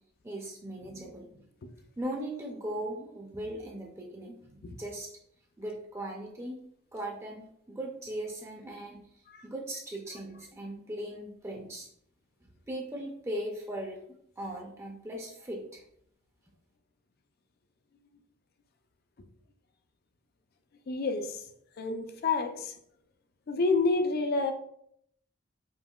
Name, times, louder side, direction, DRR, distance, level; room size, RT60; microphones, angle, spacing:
voice 1, 0.2-1.5 2.0-5.1 5.6-6.6 6.9-9.0 9.4-11.9 12.4-14.0 14.4-15.8, right 1 dB, 15° right, 0.5 m, -39 dB
voice 2, 20.9-21.4 21.8-22.7 23.5-24.5, left 3 dB, 50° left, 0.4 m, -28 dB
5.3 x 2.9 x 2.3 m
head